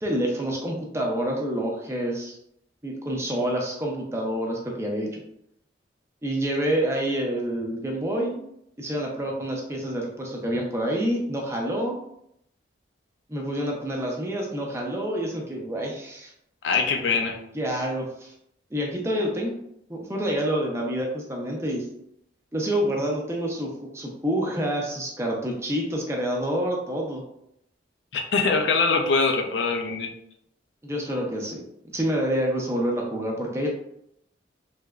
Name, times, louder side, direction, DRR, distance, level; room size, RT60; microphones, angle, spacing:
voice 1, 0.0-2.4 2.8-5.2 6.2-8.4 8.8-12.0 13.3-16.3 17.5-18.3 18.7-19.5 19.9-21.9 22.5-27.2 30.8-31.6 31.9-33.7, equal, 15° right, -1 dB, 0.5 m, -27 dB
voice 2, 16.6-17.4 28.1-30.1, left 4 dB, 75° left, 4 dB, 0.4 m, -23 dB
3.2 x 2.9 x 2.3 m, 0.75 s
head